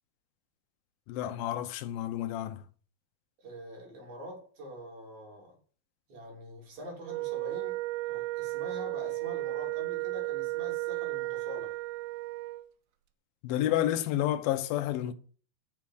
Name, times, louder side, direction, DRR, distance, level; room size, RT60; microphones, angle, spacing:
voice 1, 1.1-2.6 13.4-15.1, left 12 dB, 80° left, 2.5 m, -30 dB
voice 2, 3.4-5.5 6.1-7.8 8.1-11.8, equal, 50° right, 4.5 m, -45 dB
Wind instrument woodwind instrument, 7.0-12.7, right 19 dB, 80° right, 2.3 m, -34 dB
7.3 x 6.2 x 7.7 m
omnidirectional pair, 4.2 m